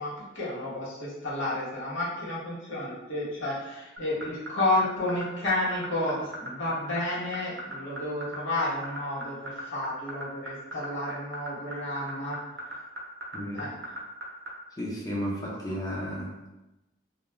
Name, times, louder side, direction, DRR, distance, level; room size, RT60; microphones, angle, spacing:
voice 1, 0.0-12.4 13.5-13.9, left 1 dB, 85° left, -8 dB, 1.0 m, -31 dB
sound 1, 4.0-14.5, right 1 dB, 60° right, 0.6 m, -37 dB
voice 2, 13.3-13.7 14.8-16.4, equal, 20° left, -4 dB, 0.5 m, -33 dB
2.3 x 2.2 x 2.9 m, 0.99 s
head